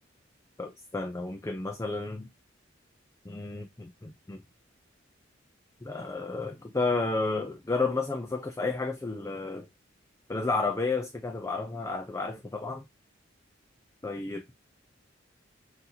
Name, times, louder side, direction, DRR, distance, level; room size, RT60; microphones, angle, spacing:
voice 1, 0.6-2.3 3.3-4.4 5.8-9.7 10.3-12.8 14.0-14.4, left 3 dB, 15° left, 0.4 m, -31 dB
6.0 x 2.7 x 2.7 m
head